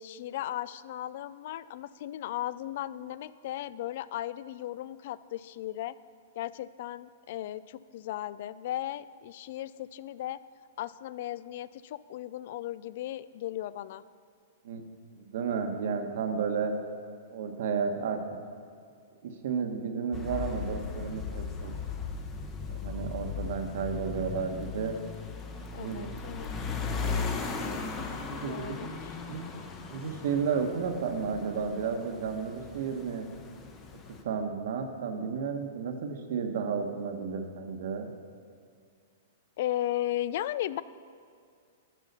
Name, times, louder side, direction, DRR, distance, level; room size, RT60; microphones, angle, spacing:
voice 1, 0.0-6.0 6.4-10.4 10.8-14.0 25.7-26.5 28.3-29.2 39.6-40.8, left 13 dB, 55° left, 17 dB, 0.3 m, -36 dB
voice 2, 15.1-16.7 17.3-18.2 19.2-21.7 22.7-24.9 25.8-26.1 28.3-28.9 29.3-29.4 29.9-33.3 34.2-38.1, right 6 dB, 65° right, 5 dB, 1.2 m, -32 dB
sound 1, 20.1-34.2, left 5 dB, 25° left, 0.9 m, -37 dB
11.0 x 5.5 x 6.7 m, 2.2 s
hypercardioid pair, 145°, 0 cm